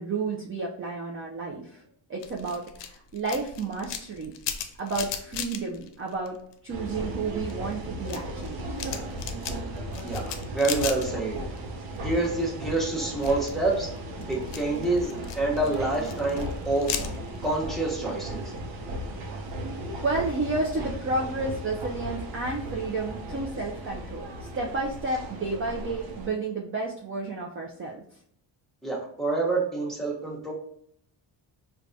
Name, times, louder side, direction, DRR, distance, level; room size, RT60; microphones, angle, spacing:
voice 1, 0.0-1.8 2.1-4.3 4.8-6.4 6.6-8.6 20.0-24.3 24.5-28.0, right 3 dB, 30° right, -1 dB, 0.4 m, -31 dB
sound 1, 2.2-6.8 7.1-11.6 11.9-12.5 13.0-17.5, left 8 dB, 75° left, 0.5 m, -37 dB
sound 2, 6.7-26.3, right 1 dB, 85° right, 0.7 m, -36 dB
voice 2, 10.5-11.4 12.0-13.9 14.3-16.9 17.4-18.4 28.8-30.5, right 2 dB, ahead, -3 dB, 0.8 m, -27 dB
4.6 x 2.2 x 2.6 m, 0.66 s
cardioid pair, 130°, 43 cm